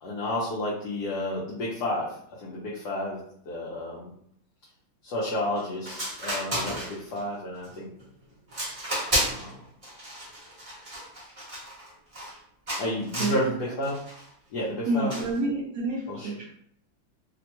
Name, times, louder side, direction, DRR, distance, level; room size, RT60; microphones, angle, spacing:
voice 1, 0.0-4.1 5.0-7.9 9.1-9.6 12.8-14.0 14.5-15.1 16.1-16.3, left 1 dB, 65° left, -6 dB, 1.2 m, -31 dB
sound 1, 5.6-5.7 5.9-7.2 7.6-8.0 8.5-9.5 9.8-12.4 12.7-13.4 13.8-14.2 15.1-15.4, right 1 dB, 30° right, 0.7 m, -32 dB
voice 2, 14.9-16.5, right 2 dB, 80° right, -4 dB, 0.7 m, -28 dB
3.3 x 2.1 x 2.9 m, 0.67 s
omnidirectional pair, 2.1 m